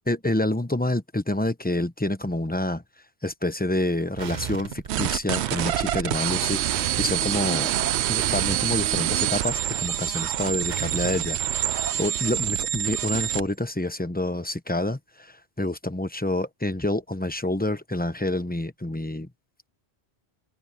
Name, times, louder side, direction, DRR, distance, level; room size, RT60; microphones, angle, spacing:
voice 1, 0.1-2.8 3.2-7.7 8.1-11.4 11.7-19.3, left 1 dB, 10° left, 0.9 m, -28 dB
sound 1, 4.2-12.1, right 8 dB, 50° right, 0.7 m, -36 dB
sound 2, 4.9-13.5, right 12 dB, 80° right, 0.9 m, -26 dB
omnidirectional pair, 1.1 m